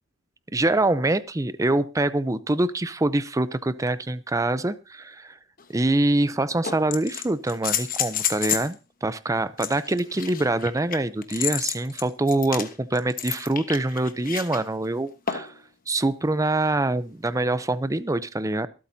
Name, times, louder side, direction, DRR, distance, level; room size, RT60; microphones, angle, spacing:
voice 1, 0.5-5.4 5.7-15.5 15.9-18.7, right 2 dB, 15° right, 15 dB, 0.6 m, -25 dB
sound 1, 5.6-5.7 6.6-8.7 9.6-14.6 15.3-15.6 17.3-17.4, left 8 dB, 45° left, 1.2 m, -30 dB
24.0 x 8.6 x 2.7 m, 0.31 s
head